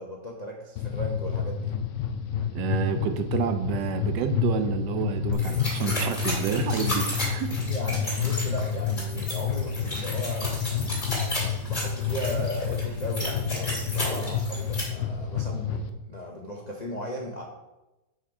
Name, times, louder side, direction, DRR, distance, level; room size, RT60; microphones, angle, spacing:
voice 1, 0.0-1.7 7.5-10.9 11.7-17.4, equal, 45° left, -2 dB, 0.5 m, -37 dB
sound 1, 0.8-15.9, left 7 dB, 90° left, 0.6 m, -29 dB
voice 2, 2.5-7.5, right 9 dB, 75° right, 8 dB, 1.2 m, -29 dB
sound 2, 5.3-14.8, left 1 dB, 25° left, 2.3 m, -34 dB
7.1 x 4.4 x 4.8 m, 1.0 s
omnidirectional pair, 2.0 m